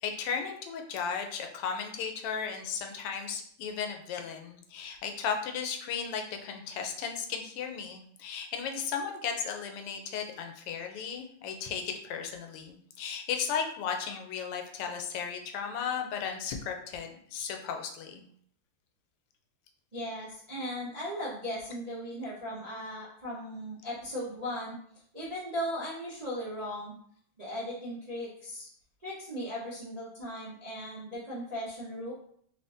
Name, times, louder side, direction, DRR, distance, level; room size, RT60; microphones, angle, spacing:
voice 1, 0.0-18.2, left 6 dB, 90° left, 4 dB, 1.6 m, -35 dB
voice 2, 19.9-24.8 25.1-26.9 27.4-28.7 29.0-32.1, equal, 60° right, -8 dB, 0.4 m, -37 dB
3.9 x 2.6 x 3.4 m, 0.62 s
omnidirectional pair, 2.4 m